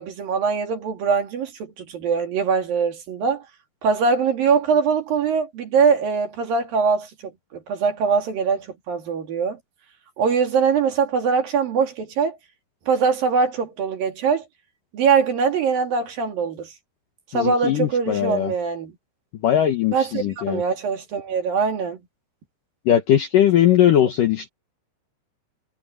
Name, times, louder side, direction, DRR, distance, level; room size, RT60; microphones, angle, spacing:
voice 1, 0.0-3.4 3.8-9.6 10.2-12.4 12.9-14.4 14.9-16.7 17.3-18.9 19.9-22.0, right 5 dB, 50° right, 3.5 m, -22 dB
voice 2, 17.3-18.5 19.4-20.6 22.9-24.5, left 11 dB, 90° left, 1.9 m, -19 dB
omnidirectional pair, 5.9 m